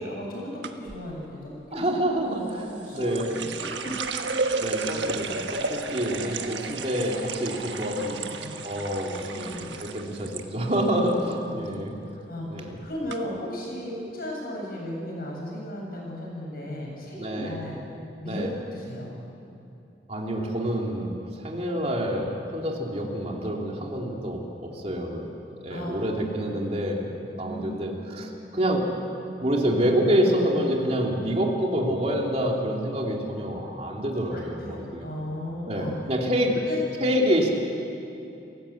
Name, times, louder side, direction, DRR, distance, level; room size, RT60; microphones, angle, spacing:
voice 1, 0.0-1.8 2.6-3.2 3.6-4.0 8.4-8.6 9.3-9.7 11.5-11.8 12.3-17.8 18.2-18.4 18.7-19.1 25.7-25.9 27.4-27.9 34.3-35.9 36.4-36.8, equal, 55° left, -2 dB, 7.6 m, -35 dB
sound 1, 0.6-1.0 2.5-10.4 10.7-11.3 11.7-12.0 12.7-12.8 13.1-13.2, right 4 dB, 90° right, 1.4 m, -33 dB
voice 2, 1.7-3.3 4.6-8.1 8.6-11.9 12.5-12.8 17.2-17.6 18.3-18.5 20.1-21.1 21.4-25.3 25.6-28.9 29.4-35.0 35.7-36.5 37.0-37.5, equal, 35° right, 0 dB, 2.9 m, -27 dB
28.5 x 16.0 x 8.5 m, 2.8 s
head